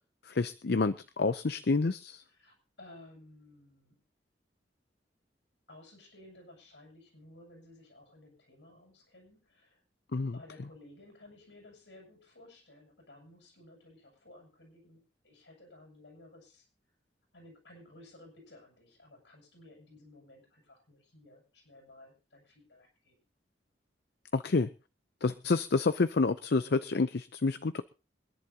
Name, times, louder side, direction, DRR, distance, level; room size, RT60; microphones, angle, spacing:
voice 1, 0.2-2.2 10.1-10.3 24.3-24.7 25.2-27.8, left 3 dB, 65° left, 12 dB, 0.6 m, -28 dB
voice 2, 2.3-4.0 5.7-9.8 10.2-16.7 17.3-23.1, left 1 dB, 85° left, 0 dB, 7.9 m, -56 dB
25.5 x 11.0 x 2.8 m, 0.31 s
head